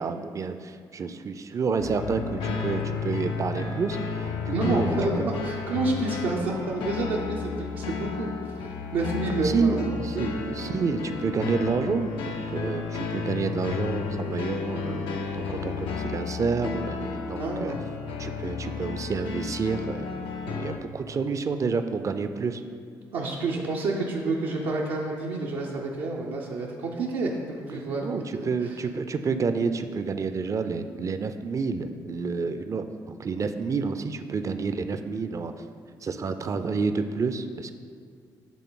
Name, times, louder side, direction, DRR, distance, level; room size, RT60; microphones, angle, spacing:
voice 1, 0.0-5.0 9.4-17.7 18.2-20.1 20.5-22.6 27.9-35.5 36.0-37.7, right 5 dB, 40° right, 9 dB, 0.4 m, -29 dB
sound 1, 1.8-20.8, left 5 dB, 85° left, 0.5 m, -32 dB
voice 2, 4.5-10.3 17.4-17.8 23.1-28.8, right 3 dB, 80° right, -3 dB, 0.6 m, -29 dB
8.3 x 3.4 x 3.8 m, 2.3 s
supercardioid pair, 65°, 9 cm